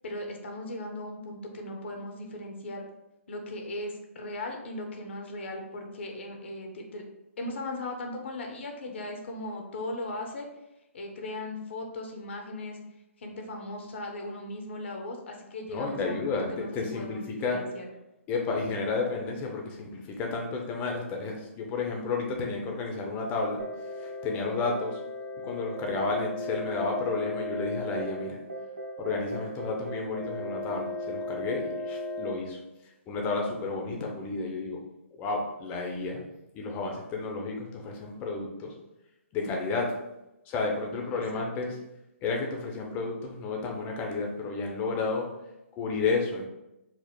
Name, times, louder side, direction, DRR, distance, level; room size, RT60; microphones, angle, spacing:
voice 1, 0.0-2.8 3.3-7.0 7.4-10.5 10.9-12.8 13.2-17.9 41.1-41.4, left 1 dB, 60° left, 2 dB, 0.8 m, -38 dB
voice 2, 15.7-17.6 18.3-23.6 23.9-25.0 25.4-28.4 29.0-32.6 33.1-34.8 35.2-36.2 36.5-38.7 39.3-40.0 40.5-41.8 42.2-45.3 45.7-46.5, left 3 dB, 20° left, 1 dB, 0.7 m, -31 dB
sound 1, 23.6-32.3, left 1 dB, 85° right, 0.8 m, -36 dB
4.8 x 2.0 x 3.7 m, 0.92 s
figure-of-eight pair, 135°, 7 cm